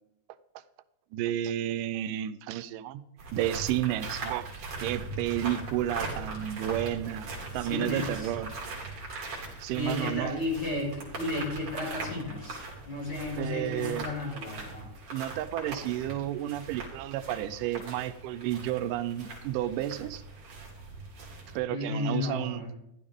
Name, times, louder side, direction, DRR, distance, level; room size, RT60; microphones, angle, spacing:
voice 1, 1.1-3.1 3.3-4.5 4.8-8.5 9.6-10.4 13.4-14.1 15.1-20.2 21.6-22.6, right 12 dB, 90° right, 13 dB, 2.2 m, -31 dB
sound 1, 3.2-21.6, right 3 dB, 50° right, 4.0 m, -40 dB
voice 2, 7.5-8.3 9.7-12.6 12.8-14.9 21.7-22.7, left 2 dB, 35° left, -3 dB, 5.5 m, -33 dB
15.0 x 11.5 x 3.5 m, 0.84 s
omnidirectional pair, 3.7 m